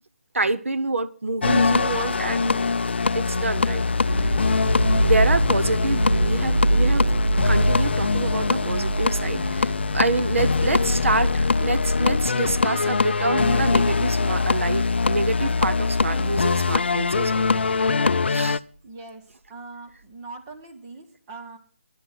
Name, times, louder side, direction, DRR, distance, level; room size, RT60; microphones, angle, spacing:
voice 1, 0.3-2.6 3.1-3.8 4.2-4.3 5.0-7.1 7.4-17.5 18.3-18.6, right 3 dB, 85° right, 0.9 m, -27 dB
sound 1, 1.4-18.6, left 4 dB, 55° left, 0.4 m, -23 dB
sound 2, 4.1-13.5 13.9-14.3 15.0-15.3, right 2 dB, 60° right, 1.6 m, -25 dB
voice 2, 18.8-19.2 19.5-21.6, right 3 dB, 15° right, 1.1 m, -41 dB
11.0 x 8.0 x 7.5 m
hypercardioid pair, 175°, 7 cm